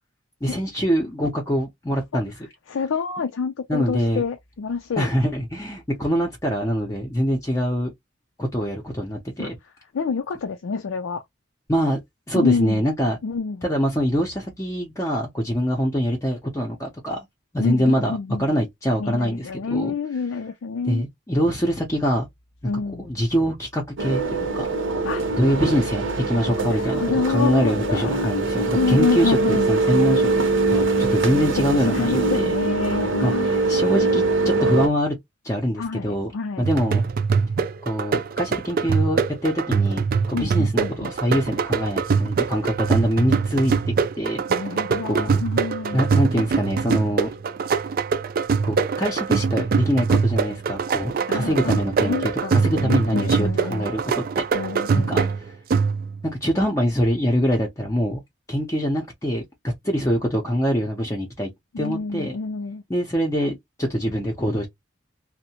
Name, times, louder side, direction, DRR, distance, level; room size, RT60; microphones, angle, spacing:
voice 1, 0.4-2.3 3.7-4.2 5.0-7.9 8.4-9.5 11.7-12.0 12.3-13.2 13.6-17.3 17.5-19.9 20.9-22.3 23.0-24.7 25.4-30.3 30.7-32.5 33.2-35.2 35.4-36.3 36.6-37.0 37.8-44.4 45.0-45.4 45.9-47.3 48.6-54.4 54.9-55.3 56.2-58.2 58.5-61.5 61.8-62.4 62.9-64.7, equal, 15° left, 0.5 m, -24 dB
voice 2, 2.7-5.1 9.4-9.5 9.9-11.2 12.3-12.8 13.2-13.6 17.6-18.5 19.0-21.1 22.6-23.1 25.0-25.2 26.6-28.3 28.7-29.7 31.8-33.7 35.8-36.7 40.3-41.1 44.5-46.0 51.3-53.9 54.5-55.2 61.7-62.8, left 5 dB, 90° left, 0.4 m, -27 dB
sound 1, 24.0-34.9, right 3 dB, 75° right, 0.7 m, -22 dB
sound 2, 36.6-56.3, right 5 dB, 45° right, 0.3 m, -23 dB
2.6 x 2.1 x 2.7 m
head